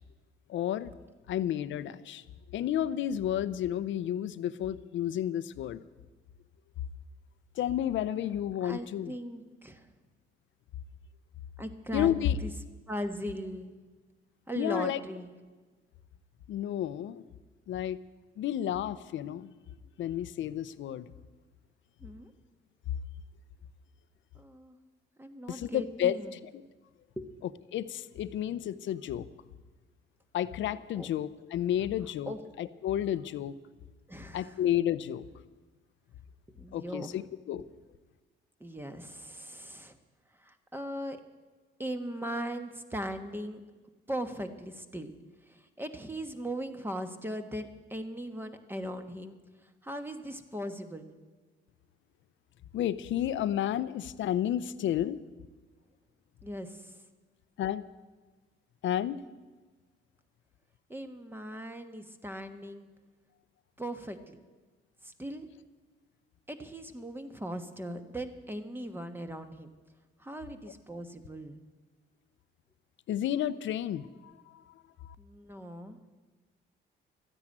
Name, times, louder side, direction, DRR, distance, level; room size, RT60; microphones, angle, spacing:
voice 1, 0.5-0.9 1.3-2.2 2.5-5.8 7.6-9.1 11.9-12.4 14.6-15.0 16.5-17.2 17.7-18.0 18.4-19.5 20.0-21.1 25.5-26.2 26.5-26.6 27.7-29.3 30.3-33.5 34.3-35.2 36.7-37.6 52.7-55.2 57.6-57.8 58.8-59.2 73.1-74.6 75.0-75.1, left 11 dB, 70° left, 15 dB, 0.7 m, -31 dB
voice 2, 8.6-9.9 11.6-12.1 12.4-12.5 12.9-13.7 14.5-15.3 22.0-22.3 24.3-24.8 25.2-26.4 27.2-27.3 31.0-31.1 32.3-32.4 34.1-34.6 36.6-37.1 38.6-40.0 40.4-41.2 41.8-43.6 44.1-45.1 45.5-49.4 49.8-51.1 56.4-56.9 60.9-62.9 63.8-64.4 65.0-65.5 66.5-69.7 70.2-71.6 75.2-76.0, equal, 10° right, 7 dB, 1.3 m, -39 dB
13.5 x 9.9 x 8.7 m, 1.3 s
cardioid pair, 90°, 20 cm